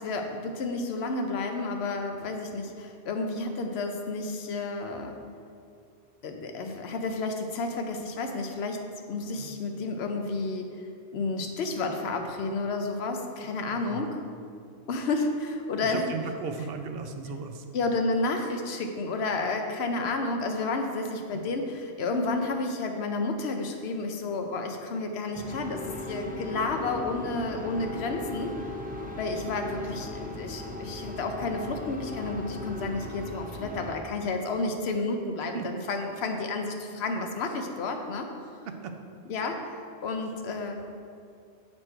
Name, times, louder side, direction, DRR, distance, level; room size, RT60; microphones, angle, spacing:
voice 1, 0.0-5.2 6.2-10.7 11.1-14.2 14.9-16.1 17.7-28.6 29.2-38.3 39.3-40.8, left 3 dB, 70° left, 4 dB, 0.9 m, -31 dB
voice 2, 13.7-14.0 15.8-17.6 21.3-21.4 30.9-31.0 35.5-35.7 38.8-38.9, right 5 dB, 65° right, 6 dB, 0.8 m, -36 dB
sound 1, 25.3-34.0, left 1 dB, 15° right, 0.3 m, -38 dB
7.9 x 4.4 x 4.4 m, 2.4 s
omnidirectional pair, 1.1 m